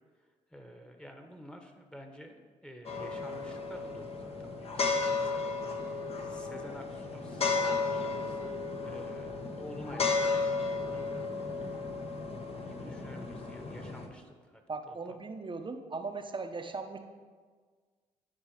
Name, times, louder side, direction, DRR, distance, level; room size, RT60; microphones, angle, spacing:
voice 1, 0.5-5.5 5.8-10.5 10.9-11.2 12.6-15.2, equal, 5° left, 5 dB, 1.4 m, -50 dB
sound 1, 2.8-14.1, left 4 dB, 40° left, 1.2 m, -34 dB
voice 2, 14.7-17.0, right 4 dB, 30° right, 6 dB, 1.0 m, -38 dB
11.5 x 4.7 x 5.0 m, 1.5 s
hypercardioid pair, 50°, 16 cm